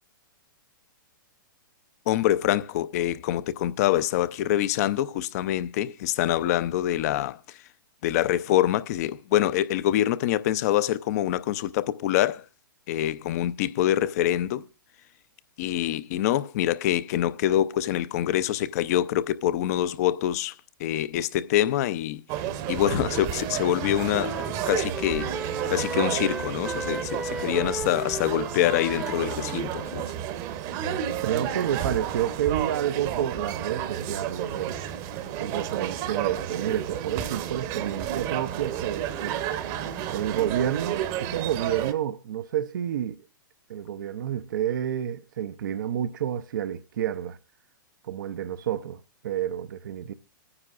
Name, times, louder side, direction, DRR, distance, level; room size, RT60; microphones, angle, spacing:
voice 1, 2.1-7.6 8.0-12.4 12.9-14.6 15.6-22.2 22.7-24.4 24.7-25.3 25.7-30.0, left 12 dB, 45° left, 0.6 m, -25 dB
sound 1, 22.3-41.9, right 10 dB, 35° right, 0.9 m, -31 dB
Wind instrument woodwind instrument, 23.3-30.1, right 1 dB, 5° right, 0.7 m, -37 dB
voice 2, 31.2-34.8 35.4-39.4 40.1-43.2 43.7-47.4 48.0-50.1, right 10 dB, 65° right, 0.5 m, -29 dB
26.0 x 9.7 x 2.4 m
hypercardioid pair, 120°, 11 cm